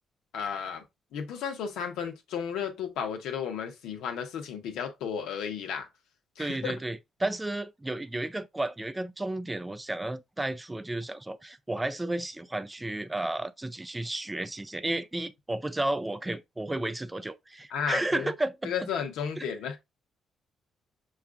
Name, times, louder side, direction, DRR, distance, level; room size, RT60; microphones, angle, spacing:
voice 1, 0.3-0.8 1.1-5.9 6.4-6.8 17.7-18.3 18.6-19.8, left 7 dB, 85° left, 0.7 m, -33 dB
voice 2, 6.4-18.9 19.4-19.5, right 1 dB, 15° right, 0.3 m, -32 dB
5.6 x 2.4 x 2.3 m
cardioid pair, 90°, 0 cm